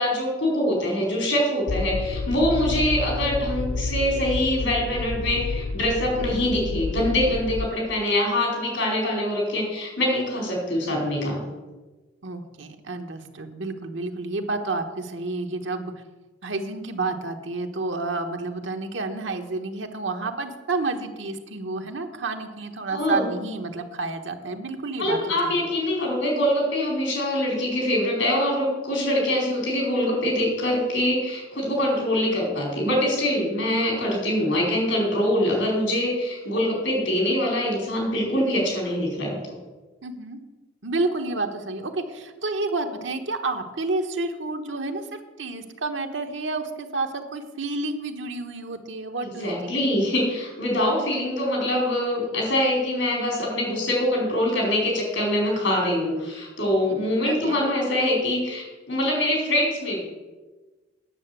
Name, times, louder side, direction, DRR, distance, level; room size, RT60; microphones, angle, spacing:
voice 1, 0.0-11.4 22.9-23.3 25.0-39.4 49.2-60.0, left 1 dB, 90° left, -1 dB, 4.6 m, -24 dB
sound 1, 1.7-7.7, left 3 dB, 70° left, 0.5 m, -29 dB
voice 2, 12.2-15.9 16.4-25.7 40.0-40.4 40.8-49.8 51.0-51.2 56.9-57.6, right 3 dB, 75° right, 5 dB, 1.2 m, -30 dB
9.7 x 6.9 x 8.1 m, 1.2 s
head